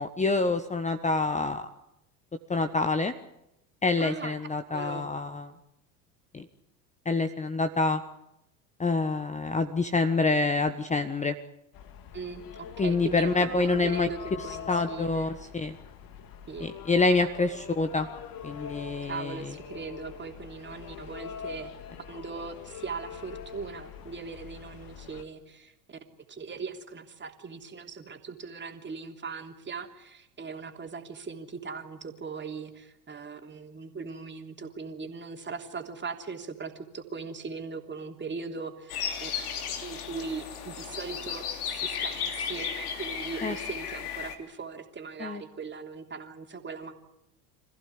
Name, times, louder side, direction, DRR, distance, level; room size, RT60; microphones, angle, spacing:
voice 1, 0.0-1.7 2.5-3.1 3.8-5.5 6.3-6.5 7.0-8.0 8.8-11.4 12.8-14.1 14.7-15.8 16.6-18.1 18.4-19.5 43.4-43.5 45.2-45.4, left 3 dB, 15° left, 10 dB, 1.3 m, -27 dB
voice 2, 4.0-4.3 4.7-5.1 12.1-15.3 16.5-16.7 19.0-21.7 22.1-26.0 26.3-39.3 39.8-46.9, right 5 dB, 25° right, 4 dB, 3.2 m, -39 dB
sound 1, 11.7-25.2, left 8 dB, 45° left, 2.3 m, -43 dB
sound 2, 38.9-44.4, left 7 dB, 70° left, 3.1 m, -34 dB
26.5 x 15.5 x 9.9 m, 0.85 s
figure-of-eight pair, 75°, 46 cm